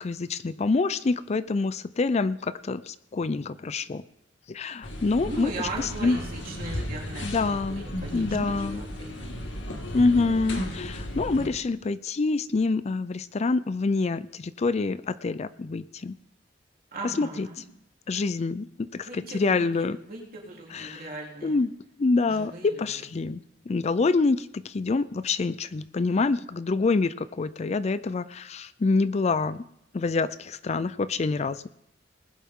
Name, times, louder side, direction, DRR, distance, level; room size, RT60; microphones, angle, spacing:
voice 1, 0.0-4.0 4.5-6.2 7.2-7.8 8.1-8.8 9.9-16.2 17.0-17.5 18.1-20.0 20.7-21.1 21.4-21.7 22.0-23.4 23.7-29.6 29.9-31.6, left 3 dB, 35° left, 15 dB, 0.4 m, -26 dB
sound 1, 4.8-11.5, left 1 dB, 85° left, 2.2 m, -35 dB
voice 2, 5.2-9.3 16.9-17.6 19.0-21.6 22.2-23.1, right 2 dB, 50° right, -2 dB, 3.5 m, -38 dB
20.0 x 11.0 x 3.7 m, 0.80 s
head